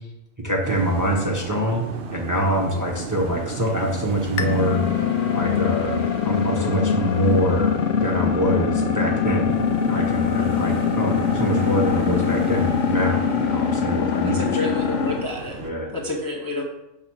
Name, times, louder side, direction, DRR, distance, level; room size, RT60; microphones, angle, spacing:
voice 1, 0.4-4.8 5.3-9.6 9.8-14.7 15.5-15.9, equal, 20° right, 0 dB, 0.6 m, -25 dB
sound 1, 0.6-15.7, right 5 dB, 60° right, 0.8 m, -34 dB
sound 2, 4.4-15.3, left 7 dB, 70° left, 0.9 m, -23 dB
voice 2, 14.3-15.6 15.9-16.6, left 2 dB, 20° left, -1 dB, 0.6 m, -29 dB
5.9 x 3.8 x 5.9 m, 0.86 s
omnidirectional pair, 1.3 m